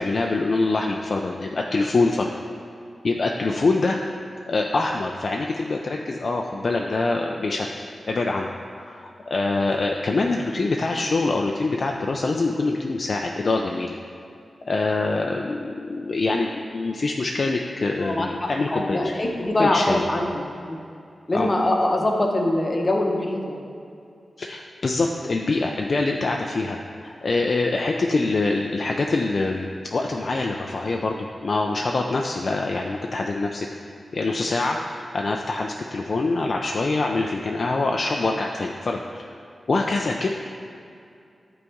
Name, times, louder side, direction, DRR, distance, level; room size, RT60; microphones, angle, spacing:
voice 1, 0.0-2.3 3.0-4.0 4.5-7.7 8.0-8.5 8.7-14.0 14.6-19.2 19.6-20.1 21.3-21.5 24.4-33.9 34.1-39.3 39.7-40.3, left 3 dB, 55° left, 1 dB, 0.4 m, -24 dB
voice 2, 18.0-20.8 21.3-23.6, left 1 dB, 35° left, 1 dB, 0.8 m, -23 dB
9.7 x 4.0 x 3.6 m, 2.5 s
wide cardioid pair, 85°, 0 cm